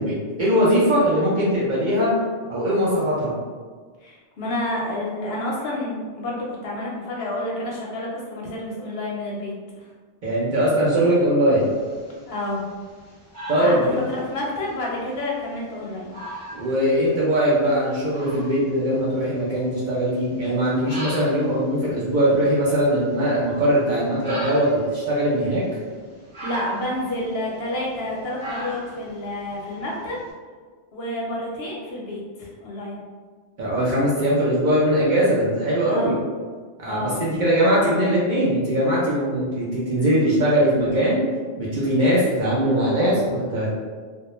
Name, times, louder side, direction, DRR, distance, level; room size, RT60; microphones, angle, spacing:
voice 1, 0.0-2.1 2.5-3.3 10.2-11.6 13.5-14.1 16.5-25.6 33.6-36.2 36.8-41.2 41.6-43.7, equal, 55° right, -7 dB, 0.6 m, -21 dB
voice 2, 4.0-9.9 12.3-12.6 13.6-13.8 14.1-16.1 26.4-30.2 30.9-33.0 35.8-36.1 36.8-37.2, left 1 dB, 65° left, -3 dB, 0.7 m, -29 dB
sound 1, 11.6-30.3, right 1 dB, 5° left, 0.8 m, -40 dB
2.2 x 2.1 x 2.9 m, 1.5 s
omnidirectional pair, 1.2 m